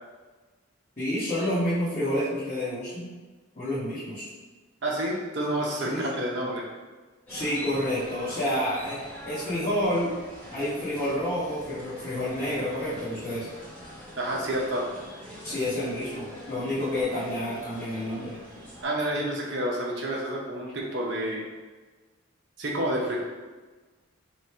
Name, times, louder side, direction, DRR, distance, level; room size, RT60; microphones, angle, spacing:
voice 1, 1.0-3.1 3.5-4.2 5.8-6.2 7.3-10.1 10.5-13.5 15.4-18.4, left 1 dB, 35° left, -13 dB, 1.1 m, -29 dB
voice 2, 4.8-6.6 14.2-14.9 18.8-21.4 22.6-23.2, right 1 dB, 55° right, -2 dB, 0.8 m, -29 dB
sound 1, 7.3-18.8, equal, 10° left, 1.0 m, -44 dB
3.1 x 2.6 x 4.3 m, 1.3 s
head